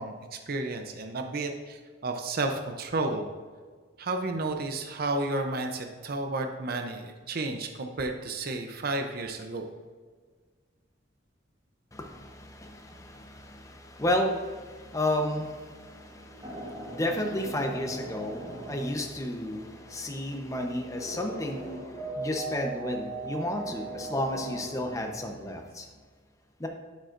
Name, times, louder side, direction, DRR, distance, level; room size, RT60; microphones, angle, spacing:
voice 1, 0.0-3.3 4.0-9.7, right 2 dB, 55° right, 5 dB, 0.6 m, -32 dB
voice 2, 11.9-25.9 26.6-26.7, left 1 dB, 15° left, 3 dB, 0.8 m, -32 dB
sound 1, 15.4-25.0, right 2 dB, 25° right, 1.4 m, -40 dB
9.3 x 8.4 x 2.5 m, 1.5 s
head